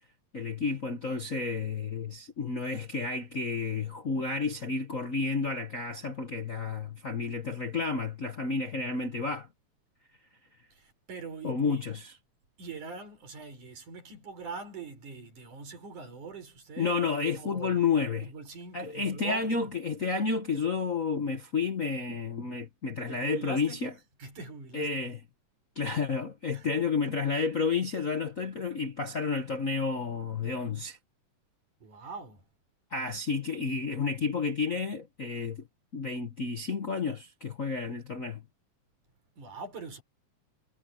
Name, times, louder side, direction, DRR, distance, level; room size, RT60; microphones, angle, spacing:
voice 1, 0.3-9.5 11.4-12.0 16.8-18.3 18.7-23.9 24.7-25.2 25.7-31.0 32.9-35.6 35.9-38.4, left 4 dB, 45° left, 1.0 m, -31 dB
voice 2, 10.7-11.8 12.6-17.0 17.4-17.8 18.2-19.7 23.1-23.8 24.2-25.1 26.5-26.7 31.8-32.5 39.4-40.0, right 4 dB, 85° right, 7.1 m, -43 dB
omnidirectional pair, 3.4 m